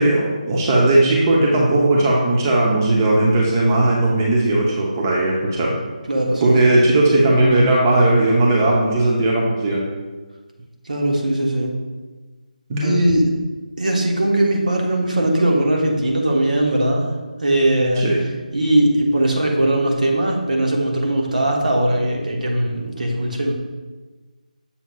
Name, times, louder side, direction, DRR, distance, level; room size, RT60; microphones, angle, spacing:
voice 1, 0.0-5.7 6.4-9.8 12.7-13.0 18.0-18.2, right 2 dB, 25° right, -3 dB, 0.7 m, -17 dB
voice 2, 6.1-6.6 10.8-11.7 12.8-13.3 13.8-18.0 18.5-23.5, right 1 dB, 65° right, 0 dB, 1.1 m, -19 dB
7.1 x 5.7 x 2.3 m, 1.3 s
figure-of-eight pair, 155°, 4 cm